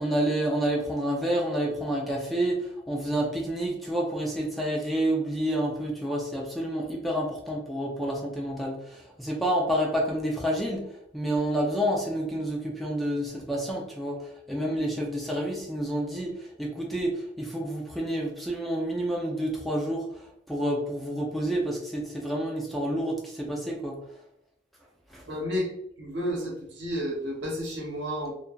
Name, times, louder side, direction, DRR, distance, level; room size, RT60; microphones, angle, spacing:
voice 1, 0.0-24.0 25.1-25.2, right 1 dB, ahead, -2 dB, 0.4 m, -29 dB
voice 2, 25.2-25.7 26.0-28.3, equal, 75° right, -1 dB, 0.9 m, -31 dB
2.8 x 2.3 x 2.3 m, 0.76 s
head